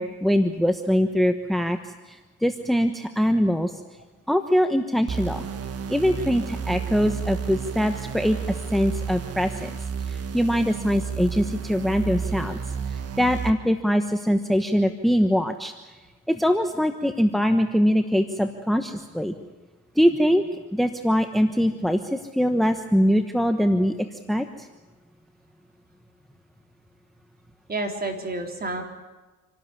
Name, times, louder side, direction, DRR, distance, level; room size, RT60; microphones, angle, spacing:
voice 1, 0.0-3.7 4.3-5.4 5.9-9.7 10.1-12.6 12.9-15.9 16.3-19.3 20.0-20.4 20.7-24.7, equal, ahead, 7 dB, 1.1 m, -23 dB
sound 1, 5.1-13.5, right 6 dB, 50° right, 1.5 m, -31 dB
voice 2, 27.7-28.8, right 2 dB, 30° right, 3 dB, 3.7 m, -30 dB
27.0 x 12.5 x 9.7 m, 1.2 s
cardioid pair, 90°, 30 cm